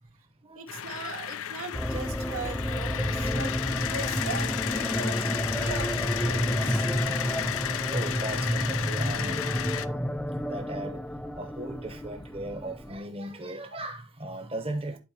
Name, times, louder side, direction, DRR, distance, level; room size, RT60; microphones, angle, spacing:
voice 1, 0.0-1.1 3.1-3.2 4.9-5.2 6.4-6.5 7.0-11.1 11.3-15.0, right 1 dB, 25° right, 1.0 m, -39 dB
voice 2, 0.5-3.5 3.9-6.8, right 4 dB, 65° right, 1.1 m, -39 dB
sound 1, 0.7-9.9, left 10 dB, 65° left, 0.5 m, -33 dB
sound 2, 1.7-13.0, equal, 5° left, 0.4 m, -30 dB
11.5 x 4.4 x 2.9 m
head